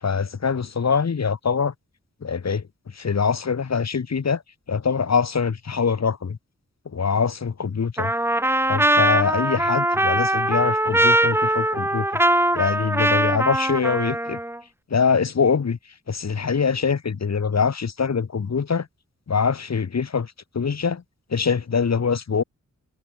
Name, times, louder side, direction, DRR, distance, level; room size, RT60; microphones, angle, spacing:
voice 1, 0.0-1.7 2.2-2.6 2.9-4.4 4.7-6.4 6.9-8.1 8.7-14.4 14.9-15.8 16.1-18.9 19.3-21.0 21.3-22.4, left 6 dB, 60° left, 2.1 m, -23 dB
Trumpet, 8.0-14.6, right 1 dB, 10° right, 1.1 m, -21 dB
wide cardioid pair, 120°, 30 cm